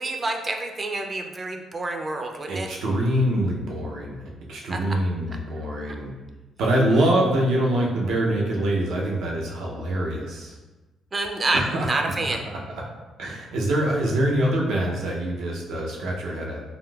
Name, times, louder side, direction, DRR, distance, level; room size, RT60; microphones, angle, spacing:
voice 1, 0.0-2.7 4.7-5.0 5.6-6.0 11.1-12.4, right 2 dB, 30° right, 4 dB, 0.4 m, -28 dB
voice 2, 2.5-4.2 4.5-6.1 6.6-10.6 11.5-11.9 13.2-16.6, right 1 dB, 80° right, -2 dB, 0.6 m, -24 dB
3.6 x 2.5 x 2.3 m, 1.1 s
cardioid pair, 90°, 0 cm